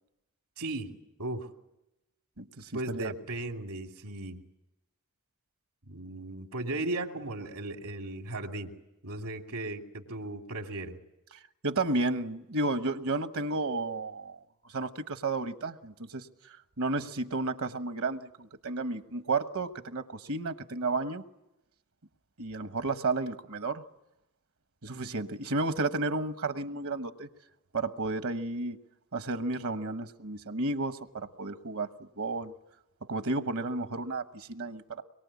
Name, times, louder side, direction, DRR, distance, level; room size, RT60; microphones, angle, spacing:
voice 1, 0.6-0.9 1.2-1.5 2.7-4.4 5.8-8.7 9.0-11.0, right 2 dB, 90° right, 2.7 m, -36 dB
voice 2, 2.4-3.1 11.6-14.4 14.7-16.3 16.8-21.2 22.4-23.8 24.8-27.3 27.7-28.8 29.1-31.9 32.2-32.5 33.1-35.0, right 3 dB, 70° right, 1.2 m, -32 dB
24.5 x 22.5 x 8.4 m
head